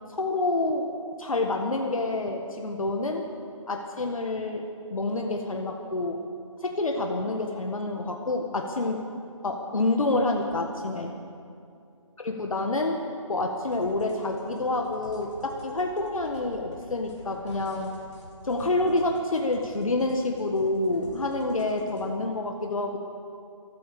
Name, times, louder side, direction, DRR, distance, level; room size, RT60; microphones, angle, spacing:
voice 1, 0.1-0.9 1.2-3.3 3.7-6.2 6.6-9.0 9.4-11.1 12.2-13.0 13.3-17.9 18.4-23.0, left 2 dB, 90° left, 2 dB, 1.6 m, -28 dB
sound 1, 13.7-22.1, left 2 dB, 60° left, 3.7 m, -49 dB
14.0 x 13.5 x 6.9 m, 2.5 s
hypercardioid pair, 175°, 17 cm